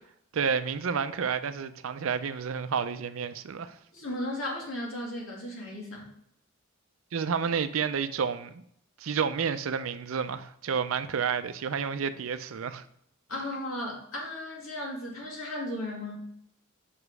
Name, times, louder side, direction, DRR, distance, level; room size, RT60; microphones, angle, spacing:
voice 1, 0.3-3.8 7.1-8.6 9.0-12.8, right 6 dB, 80° right, 0.5 m, -30 dB
voice 2, 3.9-6.1 13.3-16.2, left 1 dB, 80° left, 2.3 m, -35 dB
5.4 x 5.0 x 4.8 m
head